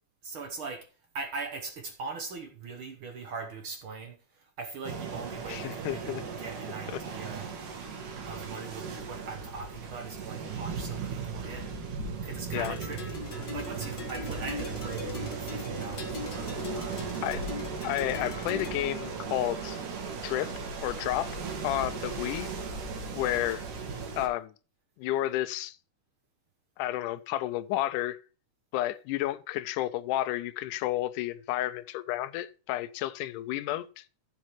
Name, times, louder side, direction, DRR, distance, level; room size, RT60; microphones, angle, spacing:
voice 1, 0.2-0.9 1.1-7.5 8.3-11.7 12.2-13.2 13.5-17.1, right 4 dB, 65° right, 1.3 m, -41 dB
sound 1, 4.8-24.3, right 5 dB, 90° right, 3.5 m, -37 dB
voice 2, 5.5-6.2 6.9-7.0 12.5-12.8 17.2-17.4 17.8-19.8 20.2-20.5 20.8-21.4 21.6-22.5 23.1-23.7 24.2-24.5 25.0-25.8 26.8-28.2 28.7-34.0, left 14 dB, 85° left, 2.1 m, -31 dB
sound 2, 12.5-18.7, left 5 dB, 45° left, 1.2 m, -41 dB
14.5 x 7.2 x 3.1 m
omnidirectional pair, 3.6 m